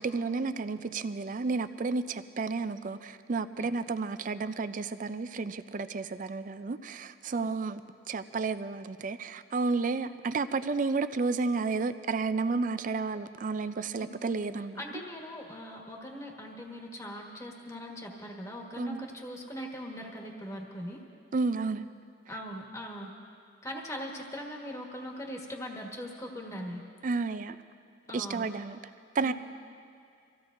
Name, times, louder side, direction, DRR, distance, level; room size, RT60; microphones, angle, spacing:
voice 1, 0.0-7.8 8.1-14.8 18.8-19.0 21.3-21.8 27.0-27.6 28.1-28.8 29.1-29.3, right 4 dB, 45° right, 12 dB, 0.4 m, -31 dB
voice 2, 14.6-21.0 22.3-23.1 23.6-26.8 28.1-28.4 29.2-29.3, equal, 15° left, 0 dB, 1.4 m, -40 dB
25.5 x 15.5 x 2.6 m, 2.3 s
head